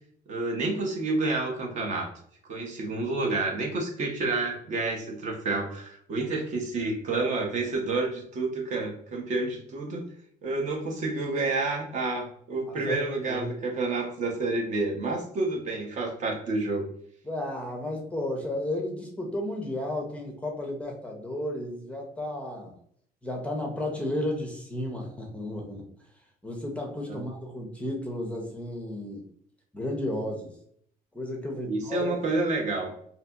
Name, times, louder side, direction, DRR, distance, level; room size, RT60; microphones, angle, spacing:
voice 1, 0.3-2.1 2.5-10.0 10.4-16.9 27.1-27.2 31.5-32.9, right 3 dB, 50° right, 2 dB, 0.6 m, -29 dB
voice 2, 12.7-13.5 17.2-22.7 23.2-25.8 26.4-29.2 29.7-30.5 31.1-32.2, left 1 dB, 10° left, 0 dB, 0.5 m, -33 dB
2.7 x 2.6 x 2.2 m, 0.65 s
cardioid pair, 135°, 16 cm